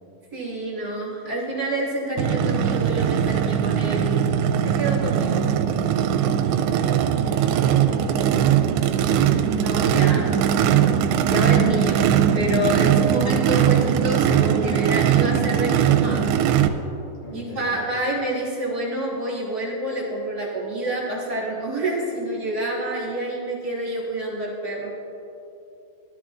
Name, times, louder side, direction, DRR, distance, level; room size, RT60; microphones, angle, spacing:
voice 1, 0.3-4.4 4.6-5.4 9.5-10.4 11.3-12.1 12.3-16.3 17.3-24.9, right 1 dB, 45° right, -6 dB, 1.2 m, -27 dB
Race car auto racing / Idling / Accelerating revving vroom, 2.2-16.7, right 9 dB, 85° right, 2.6 m, -20 dB
voice 2, 6.5-8.6 17.2-17.8, left 2 dB, 70° left, -4 dB, 4.7 m, -38 dB
19.0 x 12.5 x 2.5 m, 2.9 s
omnidirectional pair, 5.0 m